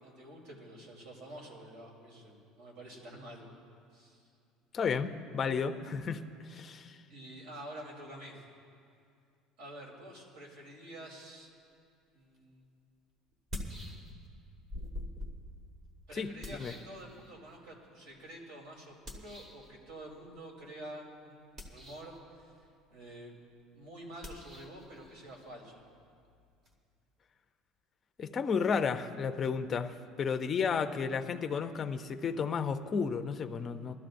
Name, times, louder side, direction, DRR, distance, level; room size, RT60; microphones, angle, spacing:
voice 1, 0.0-3.5 3.9-4.3 7.1-8.4 9.6-11.5 12.1-12.6 16.1-22.6 22.9-23.3 23.7-25.8, right 1 dB, 70° right, -1 dB, 3.3 m, -48 dB
voice 2, 4.7-6.9 16.2-16.3 16.6-16.7 28.2-33.9, left 6 dB, 20° left, 7 dB, 0.4 m, -32 dB
sound 1, 12.3-12.4 13.3-14.4 14.7-17.6 19.1-19.7 21.4-22.2 24.2-26.7, left 1 dB, 25° right, 1.3 m, -45 dB
22.5 x 13.0 x 2.6 m, 2.4 s
cardioid pair, 180°, 0 cm